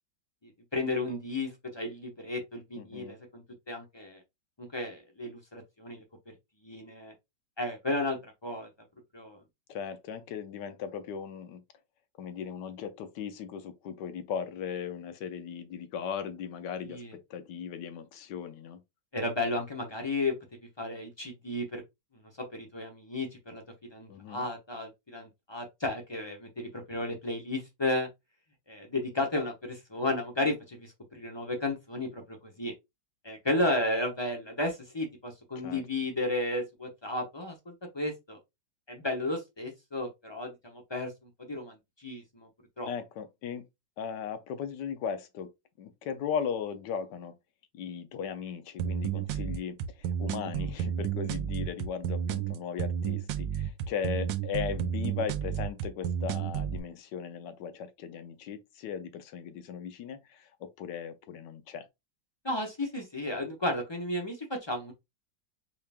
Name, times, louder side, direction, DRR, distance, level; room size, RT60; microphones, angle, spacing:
voice 1, 0.4-4.2 4.6-6.0 6.6-7.1 7.6-8.7 9.1-9.4 16.9-17.1 19.1-20.3 20.8-21.8 22.1-23.6 23.9-28.1 28.7-32.7 33.2-38.4 38.9-42.5 42.8-42.9 62.4-64.9, left 2 dB, 25° left, 0.5 m, -33 dB
voice 2, 2.8-3.2 9.7-11.6 12.2-18.8 24.1-24.5 35.6-35.8 42.9-43.7 44.0-45.5 45.8-47.3 47.7-61.9, left 7 dB, 75° left, 1.3 m, -37 dB
sound 1, 48.8-56.8, right 8 dB, 85° right, 1.3 m, -32 dB
4.7 x 2.5 x 3.4 m
omnidirectional pair, 2.0 m